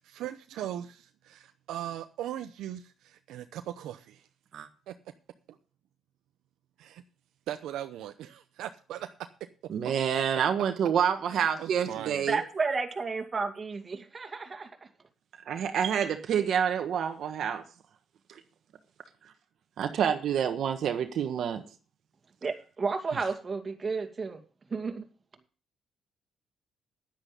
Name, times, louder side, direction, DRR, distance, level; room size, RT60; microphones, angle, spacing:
voice 1, 0.1-4.2 4.9-5.0 5.5-5.6 6.8-7.0 7.5-9.1 11.3-12.3, right 11 dB, 85° right, 0.7 m, -39 dB
voice 2, 9.7-12.4 15.5-17.6 19.8-21.6 23.1-23.2, right 8 dB, 70° right, 1.3 m, -28 dB
voice 3, 12.3-14.7 22.4-24.4 24.7-25.1, right 4 dB, 35° right, 2.3 m, -32 dB
10.5 x 9.9 x 5.2 m
cardioid pair, 90°, 0 cm